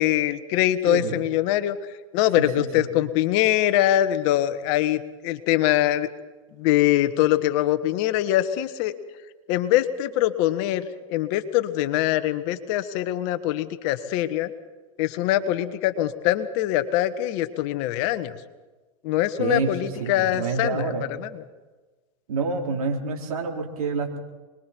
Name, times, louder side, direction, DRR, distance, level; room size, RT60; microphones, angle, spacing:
voice 1, 0.0-1.8 2.1-6.1 6.6-8.9 9.5-14.5 15.0-18.3 19.0-20.9 21.2-21.3, left 13 dB, 55° left, 11 dB, 1.6 m, -23 dB
voice 2, 2.4-2.9 19.4-19.7 20.0-21.1 22.3-24.2, right 4 dB, 80° right, 1 dB, 4.3 m, -27 dB
26.5 x 21.5 x 4.7 m, 1.2 s
hypercardioid pair, 115°, 18 cm